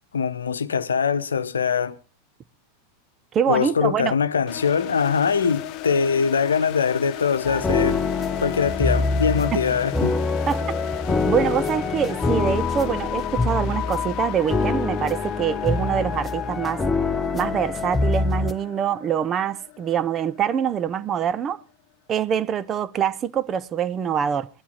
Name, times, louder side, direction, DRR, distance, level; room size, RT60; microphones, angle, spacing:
voice 1, 0.1-2.0 3.5-8.0 8.4-10.2, left 6 dB, 70° left, 0.9 m, -22 dB
voice 2, 3.3-4.1 9.5-9.6 10.5-10.6 11.3-16.8 17.3-21.6 22.1-24.5, right 8 dB, 25° right, 0.7 m, -24 dB
sound 1, 4.5-21.3, left 16 dB, 40° left, 1.1 m, -37 dB
sound 2, 7.4-18.5, left 4 dB, 15° left, 0.9 m, -25 dB
17.5 x 11.5 x 4.0 m
figure-of-eight pair, 90°, 0 cm